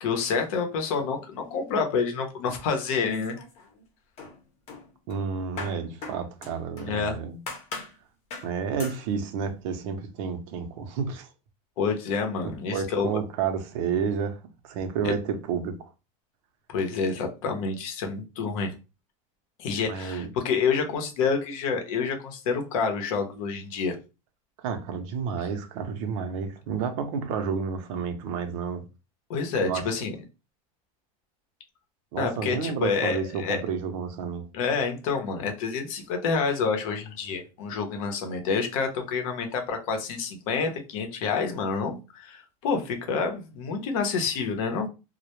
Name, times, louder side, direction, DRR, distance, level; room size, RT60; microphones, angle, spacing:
voice 1, 0.0-3.4 6.8-7.2 11.8-13.1 15.0-15.1 16.7-18.7 19.6-24.0 29.3-30.1 32.2-33.6 34.5-44.9, left 5 dB, 70° left, 0.7 m, -28 dB
sound 1, 3.1-3.8 4.2-7.0 7.5-8.0 8.3-8.5 8.8-9.0, left 3 dB, 35° left, 0.7 m, -40 dB
voice 2, 5.1-7.4 8.4-11.3 12.4-14.4 14.6-15.7 19.8-20.3 24.6-28.8 29.7-29.8 32.1-34.4, right 6 dB, 65° right, 0.5 m, -30 dB
2.1 x 2.0 x 2.9 m
supercardioid pair, 160°, 18 cm